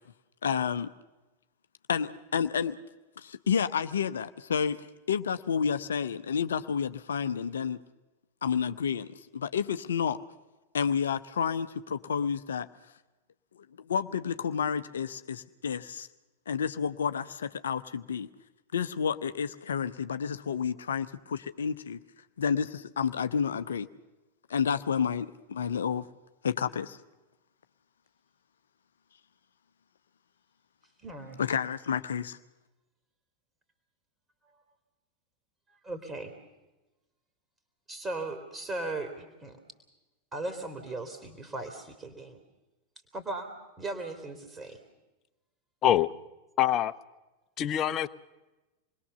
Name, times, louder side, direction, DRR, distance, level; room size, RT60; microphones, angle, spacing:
voice 1, 0.4-0.9 1.9-2.8 3.2-7.8 8.4-9.1 9.3-10.2 10.7-12.7 13.9-16.1 16.5-18.3 18.7-22.0 22.4-23.9 24.5-26.1 26.4-27.0 31.4-32.4, left 7 dB, 65° left, 11 dB, 0.8 m, -30 dB
voice 2, 31.0-31.4 35.8-36.3 37.9-39.6 40.3-42.4 43.1-44.8, right 2 dB, 20° right, 6 dB, 3.3 m, -37 dB
voice 3, 46.6-46.9 47.6-48.1, left 11 dB, 35° left, 13 dB, 0.9 m, -24 dB
27.5 x 21.0 x 6.9 m, 1.1 s
figure-of-eight pair, 90°, 0 cm